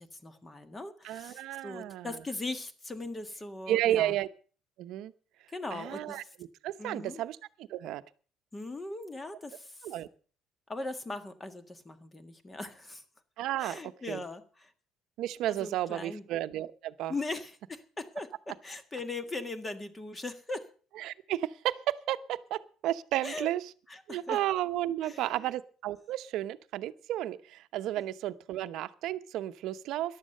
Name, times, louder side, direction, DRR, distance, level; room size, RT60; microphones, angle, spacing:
voice 1, 0.0-4.1 5.5-6.2 6.8-7.2 8.5-9.9 10.7-13.0 13.6-14.7 15.5-16.2 17.1-20.6 23.2-23.5 23.9-24.4 25.0-25.5, left 2 dB, 15° left, 10 dB, 1.6 m, -40 dB
voice 2, 1.0-2.1 3.7-4.3 4.8-5.1 5.7-6.2 6.6-8.0 9.8-10.1 13.4-13.8 14.1-14.2 15.2-17.1 21.0-23.6 24.1-30.2, right 13 dB, 65° right, 12 dB, 0.8 m, -32 dB
14.0 x 11.0 x 6.6 m, 0.41 s
cardioid pair, 145°, 0 cm